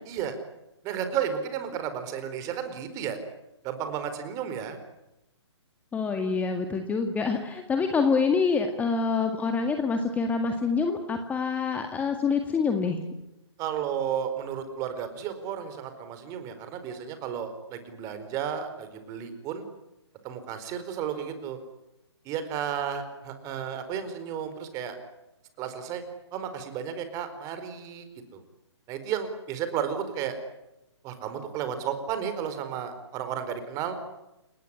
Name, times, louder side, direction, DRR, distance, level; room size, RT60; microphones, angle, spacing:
voice 1, 0.1-0.4 0.8-3.2 3.6-4.8 13.6-19.6 20.2-21.6 22.2-25.0 25.6-26.0 26.3-28.1 28.3-28.4 28.9-30.3 31.0-34.0, right 8 dB, 20° right, 9 dB, 4.4 m, -33 dB
voice 2, 5.9-13.0, left 5 dB, 10° left, 6 dB, 1.8 m, -26 dB
29.5 x 19.0 x 10.0 m, 0.92 s
figure-of-eight pair, 140°, 15 cm